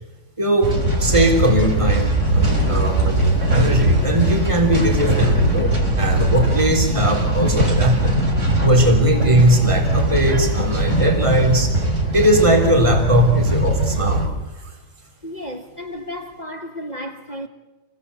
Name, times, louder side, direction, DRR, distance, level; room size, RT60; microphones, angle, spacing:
voice 1, 0.4-8.1 8.6-11.7 12.1-14.3 14.6-14.7, equal, 15° right, 3.8 m, -19 dB
sound 1, 0.6-14.3, right 2 dB, 45° right, 4.4 m, -20 dB
voice 2, 15.2-17.5, equal, 25° left, 1.6 m, -33 dB
28.5 x 21.5 x 8.4 m
omnidirectional pair, 1.8 m